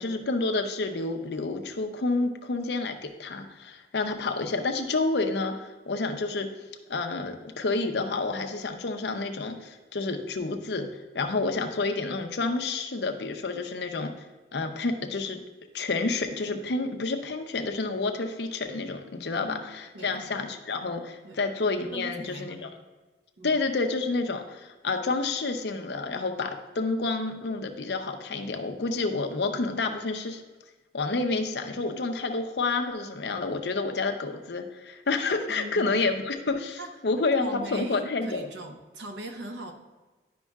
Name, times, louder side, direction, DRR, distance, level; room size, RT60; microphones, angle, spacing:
voice 1, 0.0-6.5 6.9-10.9 11.1-14.1 14.5-15.4 15.7-22.7 23.4-30.4 30.9-38.5, left 3 dB, 75° left, 5 dB, 0.7 m, -29 dB
voice 2, 19.9-20.4 21.2-21.4 21.9-22.6 23.4-23.6 35.5-36.2 36.8-36.9 37.4-39.7, right 1 dB, 85° right, 5 dB, 0.8 m, -40 dB
10.5 x 5.4 x 2.4 m, 1.3 s
head